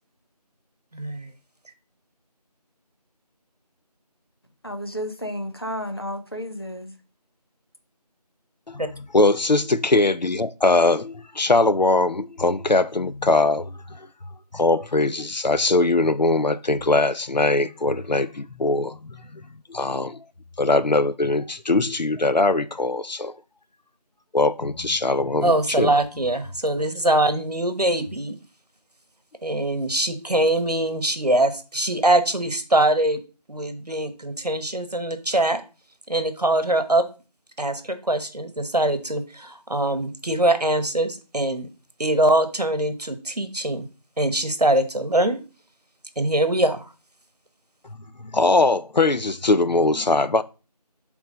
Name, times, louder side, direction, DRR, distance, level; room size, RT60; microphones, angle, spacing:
voice 1, 0.9-1.3 8.8-8.9 25.4-28.4 29.4-33.2 33.5-35.6 36.1-37.0 37.6-41.7 42.0-43.9 44.2-45.4 46.2-46.9, right 1 dB, 70° right, 1.4 m, -23 dB
voice 2, 4.6-6.9, equal, 35° left, 0.9 m, -32 dB
voice 3, 8.7-13.7 14.5-19.4 19.7-20.2 20.6-23.3 24.3-25.9 48.3-50.4, left 2 dB, 90° left, 0.7 m, -21 dB
7.4 x 3.6 x 5.1 m
figure-of-eight pair, 180°, 21 cm